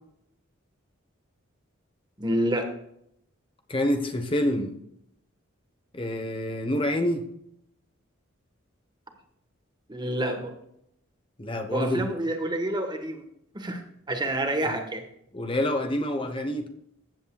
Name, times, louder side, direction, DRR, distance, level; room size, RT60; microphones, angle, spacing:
voice 1, 2.2-2.7 9.9-10.6 11.7-13.2 13.5-13.8 14.1-15.0, right 1 dB, 20° right, 5 dB, 1.4 m, -28 dB
voice 2, 3.7-4.7 5.9-7.3 11.4-12.1 14.6-14.8 15.3-16.7, left 1 dB, 25° left, 6 dB, 1.0 m, -27 dB
15.0 x 8.3 x 2.3 m, 0.74 s
head